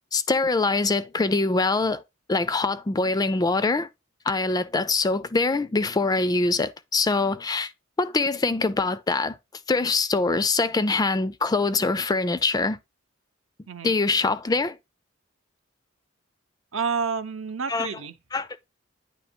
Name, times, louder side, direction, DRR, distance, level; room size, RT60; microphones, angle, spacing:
voice 1, 0.1-2.0 2.3-3.9 4.3-7.7 8.0-9.4 9.7-12.8 13.8-14.8 17.7-17.9 18.3-18.5, left 3 dB, 20° left, 0.3 m, -23 dB
voice 2, 16.7-18.2, right 5 dB, 75° right, 0.7 m, -29 dB
9.0 x 3.0 x 5.1 m
head